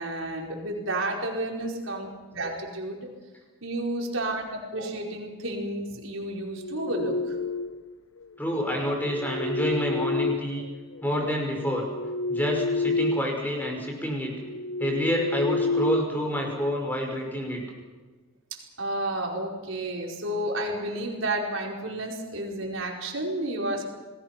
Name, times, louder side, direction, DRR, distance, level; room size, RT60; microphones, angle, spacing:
voice 1, 0.0-3.1 3.6-7.4 18.8-23.8, right 1 dB, 70° right, 0 dB, 4.9 m, -31 dB
sound 1, 6.4-7.9 8.9-11.0 11.5-13.4 13.7-13.9 14.4-16.8, left 2 dB, 80° left, 0.7 m, -30 dB
voice 2, 8.4-10.6 11.0-11.8 12.3-14.3 14.8-17.6, equal, 10° left, 1 dB, 5.6 m, -28 dB
29.5 x 20.0 x 6.0 m, 1.3 s
head